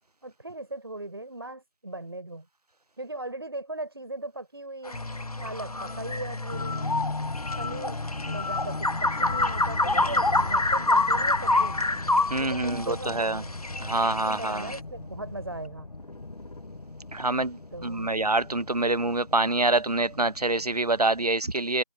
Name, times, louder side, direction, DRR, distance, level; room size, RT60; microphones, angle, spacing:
voice 1, 0.2-2.5 3.0-5.0 5.4-7.0 7.6-11.8 12.4-13.5 14.0-15.9 17.7-18.1, right 2 dB, 40° right, 5.3 m, -38 dB
sound 1, 4.9-21.3, left 2 dB, 90° left, 1.2 m, -38 dB
sound 2, 4.9-14.8, left 2 dB, 70° left, 1.4 m, -27 dB
voice 2, 12.3-13.4 13.8-14.7 17.1-21.8, right 2 dB, 80° right, 1.1 m, -26 dB
figure-of-eight pair, 175°, 20 cm